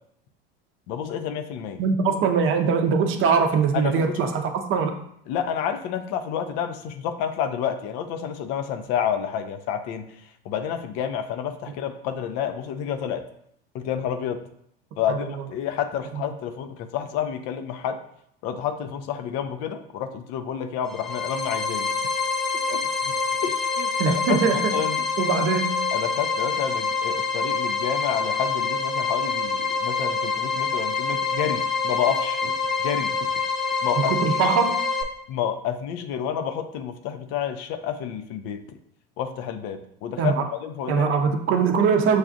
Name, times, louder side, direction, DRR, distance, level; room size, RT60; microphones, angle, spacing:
voice 1, 0.9-1.8 3.7-4.3 5.3-10.1 10.4-13.3 13.7-14.4 15.0-18.0 18.4-21.9 22.7-23.1 23.4-24.2 24.5-25.0 25.9-32.5 32.8-33.2 33.8-34.1 35.3-38.6 39.2-40.3 40.6-41.1, left 8 dB, 55° left, 8 dB, 0.5 m, -29 dB
voice 2, 1.8-4.9 15.1-15.2 16.1-16.2 24.0-24.7 25.2-25.7 34.1-34.8 40.2-40.5 40.9-42.2, right 5 dB, 45° right, 5 dB, 0.6 m, -22 dB
sound 1, 20.8-35.0, left 4 dB, ahead, 0.4 m, -26 dB
6.2 x 2.3 x 2.6 m, 0.72 s
hypercardioid pair, 85°, 30 cm